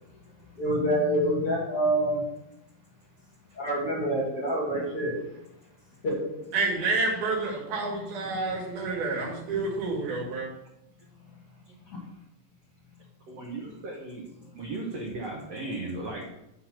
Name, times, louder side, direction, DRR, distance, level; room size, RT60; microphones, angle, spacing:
voice 1, 0.6-2.2 3.5-5.2 6.0-6.2 11.9-12.0, right 1 dB, 40° left, -5 dB, 3.0 m, -26 dB
voice 2, 6.5-10.5, right 3 dB, 85° right, -2 dB, 4.0 m, -29 dB
voice 3, 13.3-14.3 14.6-16.2, right 2 dB, 60° right, -2 dB, 1.8 m, -36 dB
10.5 x 4.0 x 5.7 m, 0.85 s
omnidirectional pair, 4.2 m